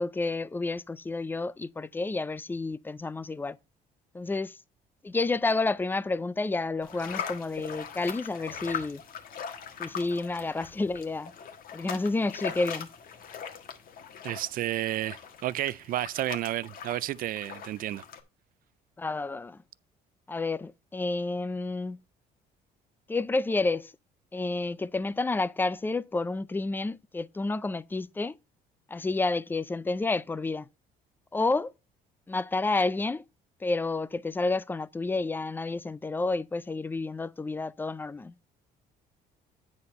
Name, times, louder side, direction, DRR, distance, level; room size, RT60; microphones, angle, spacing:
voice 1, 0.0-3.6 4.1-4.6 5.0-9.0 9.8-11.3 11.7-12.9 19.0-19.6 20.3-22.0 23.1-23.9 24.3-28.4 28.9-30.7 31.3-31.7 32.3-33.2 33.6-38.3, left 3 dB, 10° left, 0.4 m, -30 dB
sound 1, 6.8-18.2, left 7 dB, 60° left, 1.6 m, -41 dB
voice 2, 14.2-18.0, right 14 dB, 55° right, 0.4 m, -31 dB
9.6 x 4.2 x 5.4 m
cardioid pair, 110°, 17 cm